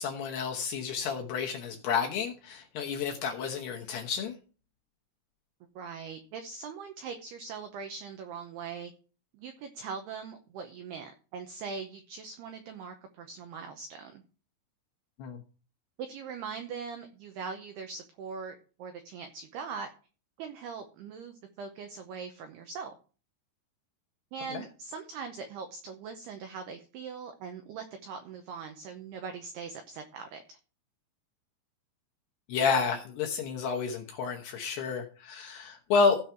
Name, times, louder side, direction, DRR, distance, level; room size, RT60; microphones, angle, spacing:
voice 1, 0.0-4.4 15.2-15.4 24.5-24.6 32.5-36.2, left 5 dB, 70° left, 1 dB, 2.6 m, -30 dB
voice 2, 5.8-8.9 9.3-14.2 16.0-19.9 20.4-23.0 24.3-30.6, right 5 dB, 85° right, 6 dB, 2.3 m, -41 dB
16.0 x 5.4 x 4.5 m, 0.37 s
omnidirectional pair, 5.9 m